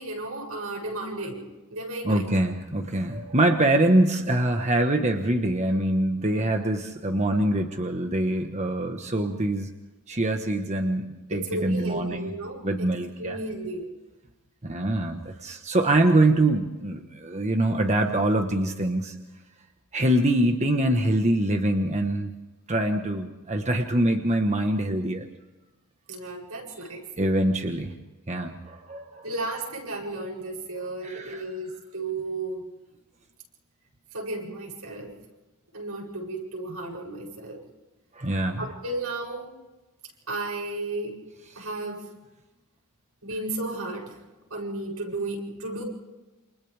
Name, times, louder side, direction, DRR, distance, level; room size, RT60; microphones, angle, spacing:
voice 1, 0.0-2.3 11.3-12.9 13.2-13.9 26.1-27.0 29.2-32.6 34.1-35.1 35.7-37.6 38.6-39.5 40.3-41.2 41.5-42.0 43.2-44.2 44.5-45.8, right 2 dB, 90° right, 0 dB, 7.9 m, -33 dB
voice 2, 2.0-9.7 10.1-11.0 11.3-12.3 12.6-13.4 14.6-19.1 19.9-22.3 22.7-25.3 27.2-27.9 28.3-29.3 30.8-31.4 38.2-38.7, right 1 dB, 30° right, 4 dB, 1.4 m, -24 dB
29.0 x 27.5 x 3.6 m, 1.1 s
head